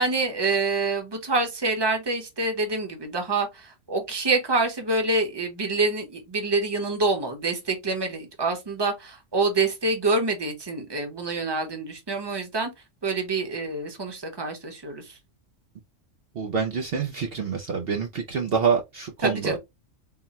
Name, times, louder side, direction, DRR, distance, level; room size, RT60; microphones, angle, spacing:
voice 1, 0.0-12.7 13.0-15.2 19.2-19.6, right 3 dB, 20° right, 0.9 m, -26 dB
voice 2, 16.4-19.6, right 6 dB, 60° right, 0.7 m, -26 dB
3.9 x 2.2 x 4.1 m
omnidirectional pair, 1.3 m